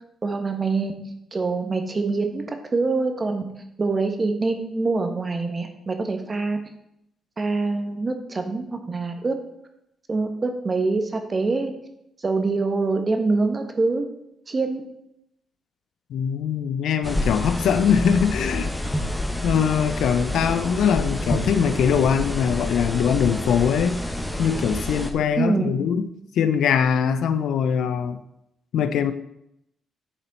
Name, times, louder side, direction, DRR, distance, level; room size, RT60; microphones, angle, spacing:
voice 1, 0.2-0.9 1.3-3.4 3.8-6.6 7.4-9.3 10.1-11.7 12.2-14.0 14.5-14.8 25.4-25.7, right 3 dB, 35° right, 5 dB, 1.3 m, -24 dB
voice 2, 16.1-18.7 19.4-24.0 24.4-26.1 26.4-28.2 28.7-29.1, left 7 dB, 80° left, 11 dB, 0.4 m, -22 dB
sound 1, 17.0-25.1, left 1 dB, 5° left, 1.0 m, -28 dB
10.0 x 4.2 x 4.1 m, 0.79 s
cardioid pair, 75°, 0 cm